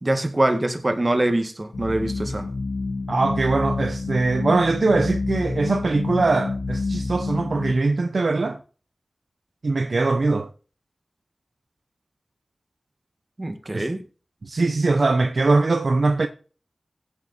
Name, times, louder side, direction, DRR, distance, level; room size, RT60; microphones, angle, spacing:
voice 1, 0.0-2.5 13.4-14.0, right 1 dB, 35° right, 2.0 m, -24 dB
sound 1, 1.7-7.7, left 3 dB, 90° left, 0.9 m, -28 dB
voice 2, 3.1-8.6 9.6-10.5 13.7-13.9 14.4-16.3, right 3 dB, 65° right, 0.9 m, -21 dB
16.0 x 6.8 x 4.5 m
wide cardioid pair, 65°, 0 cm